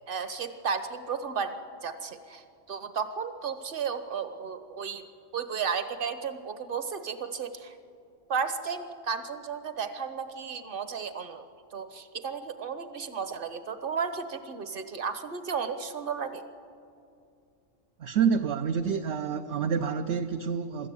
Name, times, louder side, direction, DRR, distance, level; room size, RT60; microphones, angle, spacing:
voice 1, 0.1-5.0 5.3-7.8 8.3-11.4 11.7-16.5, right 6 dB, 45° right, 10 dB, 1.3 m, -34 dB
voice 2, 18.0-20.9, right 6 dB, 60° right, 6 dB, 0.9 m, -28 dB
24.5 x 13.5 x 8.4 m, 2.5 s
omnidirectional pair, 1.3 m